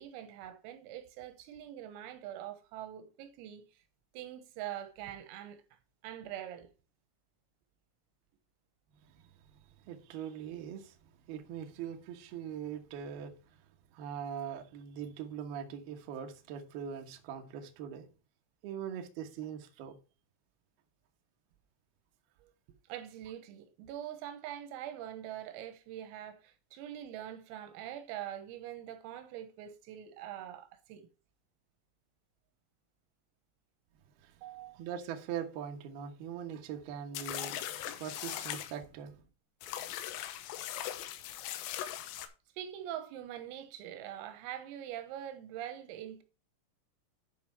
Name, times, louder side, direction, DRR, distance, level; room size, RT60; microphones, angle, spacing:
voice 1, 0.0-3.8 4.1-5.6 6.0-6.7 22.4-22.5 22.9-31.1 34.4-34.8 42.6-46.2, right 11 dB, 85° right, 3.8 m, -44 dB
voice 2, 9.5-13.3 13.9-18.0 18.6-19.9 34.2-34.3 34.7-39.2, right 8 dB, 65° right, 2.6 m, -42 dB
sound 1, 37.1-38.7 39.6-42.3, left 12 dB, 80° left, 3.5 m, -39 dB
11.0 x 5.2 x 4.3 m
omnidirectional pair, 6.0 m